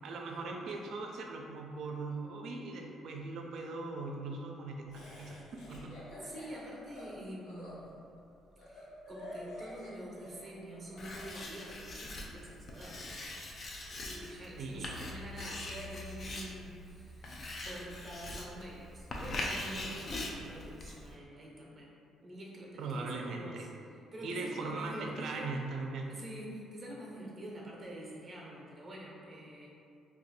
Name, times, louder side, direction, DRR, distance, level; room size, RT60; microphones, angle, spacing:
voice 1, 0.0-6.0 14.6-15.2 22.8-23.7 24.2-26.1, right 3 dB, 65° right, 1 dB, 0.4 m, -40 dB
Laughter, 4.9-11.3, left 1 dB, 80° left, 0.7 m, -48 dB
voice 2, 6.2-7.9 8.6-13.0 14.0-21.9 22.2-23.7 24.1-25.5 26.1-29.7, right 1 dB, 25° right, -3 dB, 0.6 m, -46 dB
Writing, 11.0-21.1, left 2 dB, 40° left, 0.4 m, -42 dB
2.6 x 2.2 x 4.0 m, 2.5 s
cardioid pair, 135°, 0 cm